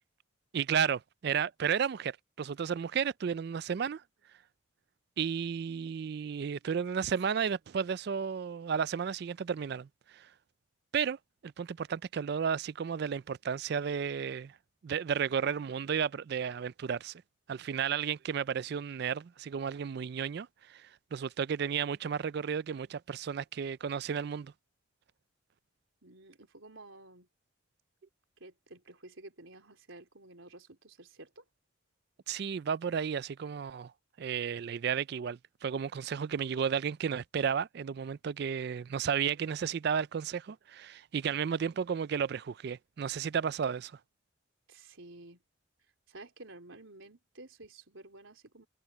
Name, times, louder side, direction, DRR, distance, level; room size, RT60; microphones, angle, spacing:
voice 1, 0.5-4.0 5.2-10.3 10.9-14.6 14.8-17.2 17.5-24.5 32.3-33.9 34.2-43.9, right 7 dB, 50° right, 0.3 m, -33 dB
voice 2, 26.0-27.3 28.4-31.4 44.7-45.4 46.1-48.7, right 2 dB, 75° right, 3.9 m, -52 dB
head